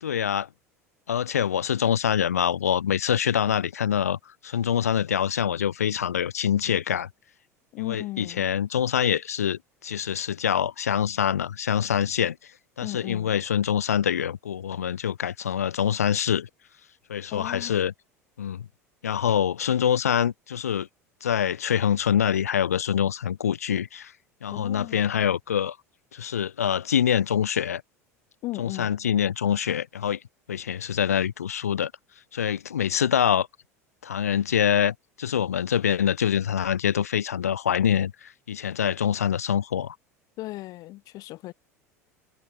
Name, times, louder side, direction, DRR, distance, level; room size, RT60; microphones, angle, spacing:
voice 1, 0.0-0.5 1.1-7.1 7.8-12.5 12.8-16.5 17.1-17.9 18.4-18.7 19.0-20.9 21.2-24.1 24.4-25.8 26.1-27.8 28.6-30.2 30.5-31.9 32.3-33.5 34.0-40.0, left 9 dB, 75° left, 0.5 m, -25 dB
voice 2, 7.7-8.5 12.8-13.3 17.3-17.8 24.5-25.0 28.4-28.9 40.4-41.5, left 18 dB, 45° left, 3.9 m, -36 dB
figure-of-eight pair, 75°, 8 cm